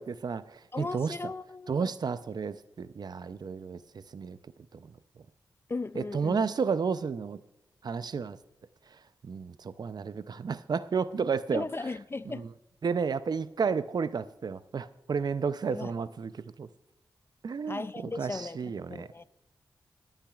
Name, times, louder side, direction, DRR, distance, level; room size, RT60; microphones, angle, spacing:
voice 1, 0.0-1.1 1.7-3.8 4.1-4.4 4.7-4.9 6.0-7.4 7.8-8.4 9.2-11.6 12.3-12.5 12.8-16.3 16.6-16.7 17.4-19.1, right 5 dB, 60° right, 0.5 m, -32 dB
voice 2, 0.7-1.9 5.7-6.4 11.5-12.4 15.7-15.9 17.7-19.2, left 3 dB, 30° left, 0.4 m, -37 dB
26.5 x 8.9 x 2.4 m
cardioid pair, 50°, 8 cm